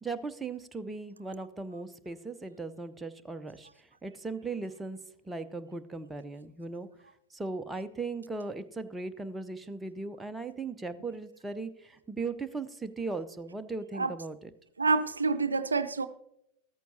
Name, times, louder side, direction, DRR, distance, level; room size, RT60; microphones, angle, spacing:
voice 1, 0.0-5.0 5.2-6.9 7.3-14.5, right 3 dB, 10° right, 8 dB, 0.6 m, -38 dB
voice 2, 14.8-16.1, right 4 dB, 75° right, 12 dB, 0.5 m, -27 dB
14.0 x 13.5 x 2.7 m, 0.80 s
figure-of-eight pair, 90°, 0 cm